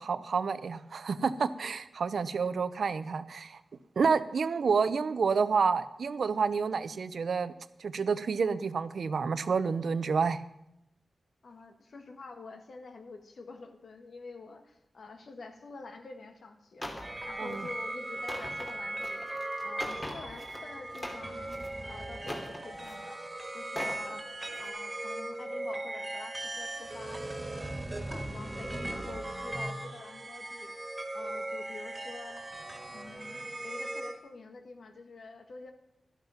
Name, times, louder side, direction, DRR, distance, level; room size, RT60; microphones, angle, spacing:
voice 1, 0.0-3.6 4.0-7.5 7.8-10.4 17.4-17.7, right 5 dB, 75° right, 14 dB, 0.6 m, -29 dB
voice 2, 11.4-19.3 19.6-21.5 21.8-23.2 23.5-27.7 28.1-30.7 31.1-32.4 32.9-35.7, left 3 dB, 70° left, 6 dB, 1.6 m, -47 dB
sound 1, 16.8-17.1 17.5-17.7 18.1-20.6 20.9-21.7 22.2-23.0 23.6-24.0 24.5-24.7, left 1 dB, 25° left, 2.6 m, -41 dB
sound 2, 17.0-34.2, right 1 dB, 20° right, 2.1 m, -38 dB
12.0 x 12.0 x 5.8 m, 0.85 s
wide cardioid pair, 85°, 0 cm